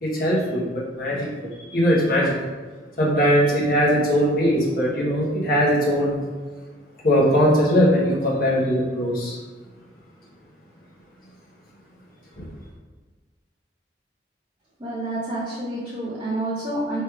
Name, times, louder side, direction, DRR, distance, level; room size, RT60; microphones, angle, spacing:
voice 1, 0.0-2.5 3.0-6.1 7.0-9.4 12.4-12.5, equal, 55° left, -5 dB, 1.2 m, -20 dB
voice 2, 14.8-17.0, right 1 dB, 30° right, -9 dB, 0.9 m, -28 dB
3.3 x 3.2 x 4.6 m, 1.4 s
head